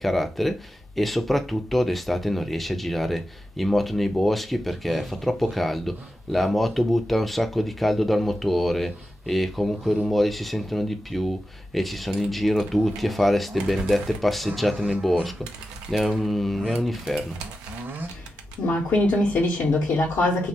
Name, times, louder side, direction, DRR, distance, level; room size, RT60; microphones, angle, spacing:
voice 1, 0.0-17.4, equal, ahead, 0.5 m, -25 dB
sound 1, 4.7-7.1 7.8-10.7 11.0-11.2 11.8-18.1, right 2 dB, 35° right, 0.7 m, -41 dB
sound 2, 11.8-13.2 13.5-14.4 14.8-15.0 15.2-18.6, right 5 dB, 80° right, 0.4 m, -40 dB
voice 2, 18.6-20.5, left 2 dB, 55° left, 0.8 m, -22 dB
2.8 x 2.3 x 2.7 m
hypercardioid pair, 50°, 6 cm